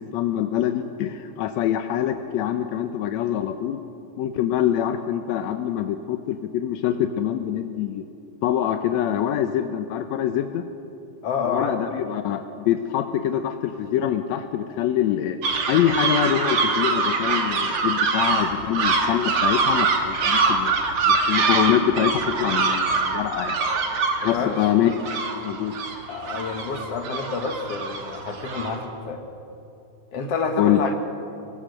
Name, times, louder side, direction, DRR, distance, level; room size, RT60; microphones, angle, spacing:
voice 1, 0.0-3.8 4.2-8.0 8.4-10.6 11.5-15.4 15.7-20.7 21.1-23.6 24.2-25.1 25.4-25.7 30.6-30.8, left 10 dB, 75° left, 7 dB, 1.6 m, -24 dB
voice 2, 11.2-11.7 24.2-24.6 26.1-29.2 30.1-30.9, left 5 dB, 50° left, 5 dB, 2.3 m, -28 dB
sound 1, 15.4-28.8, right 4 dB, 45° right, 2.2 m, -24 dB
23.5 x 21.0 x 6.6 m, 2.7 s
omnidirectional pair, 4.0 m